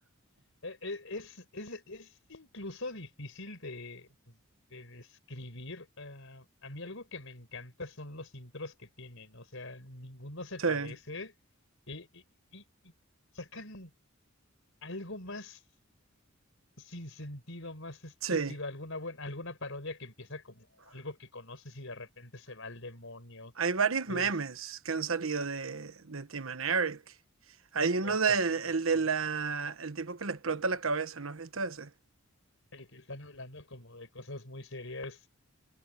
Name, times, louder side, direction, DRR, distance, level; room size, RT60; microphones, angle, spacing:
voice 1, 0.6-4.4 4.7-11.3 11.9-12.2 12.5-12.9 13.3-13.9 14.8-15.6 16.8-23.5 24.1-24.3 28.0-28.4 28.9-29.0 32.7-35.3, left 2 dB, 65° left, 6.4 m, -43 dB
voice 2, 10.6-10.9 18.2-18.5 23.6-27.0 27.7-31.9, right 5 dB, 70° right, 1.2 m, -31 dB
head